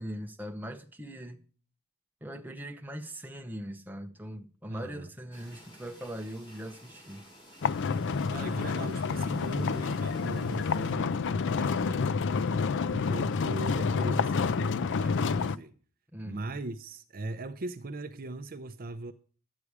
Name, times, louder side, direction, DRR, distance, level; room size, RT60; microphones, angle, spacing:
voice 1, 0.0-1.4 2.2-7.2 16.1-16.5, equal, 10° right, 0.9 m, -40 dB
voice 2, 4.7-5.1 8.3-12.3 12.9-15.7 16.2-19.1, right 2 dB, 40° right, 0.6 m, -39 dB
sound 1, 5.3-11.0, equal, 25° left, 5.2 m, -53 dB
sound 2, 7.6-15.5, left 5 dB, 55° left, 0.4 m, -29 dB
11.0 x 8.4 x 4.8 m
head